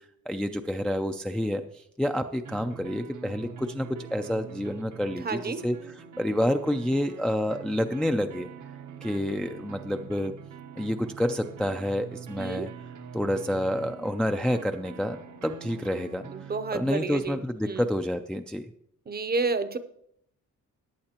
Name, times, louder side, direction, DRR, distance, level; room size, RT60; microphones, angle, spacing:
voice 1, 0.3-1.6 2.0-5.8 6.2-8.5 9.0-10.3 10.8-12.7 13.1-16.3 16.7-18.7, equal, 5° left, 6 dB, 0.4 m, -28 dB
sound 1, 2.4-17.2, right 7 dB, 70° right, 0.9 m, -44 dB
voice 2, 5.2-5.6 12.4-12.7 16.3-17.9 19.1-19.8, right 3 dB, 30° right, 12 dB, 0.7 m, -30 dB
15.5 x 10.5 x 2.9 m, 0.71 s
wide cardioid pair, 145°, 31 cm